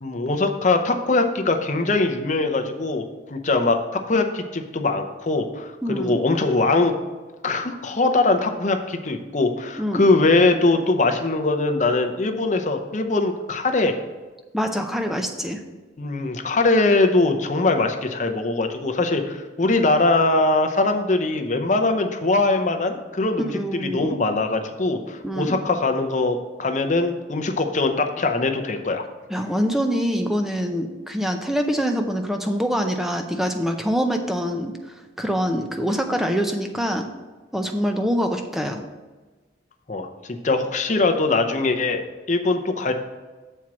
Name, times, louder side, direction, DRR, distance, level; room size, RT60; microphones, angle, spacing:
voice 1, 0.0-6.9 7.4-13.9 16.0-29.0 39.9-42.0 42.3-42.9, left 3 dB, 40° left, 5 dB, 0.7 m, -22 dB
voice 2, 5.8-6.2 9.8-10.1 14.5-15.6 23.4-24.2 25.2-25.6 29.3-34.7 35.2-37.1 37.5-38.8, equal, ahead, 4 dB, 0.5 m, -25 dB
7.4 x 4.5 x 6.1 m, 1.3 s
head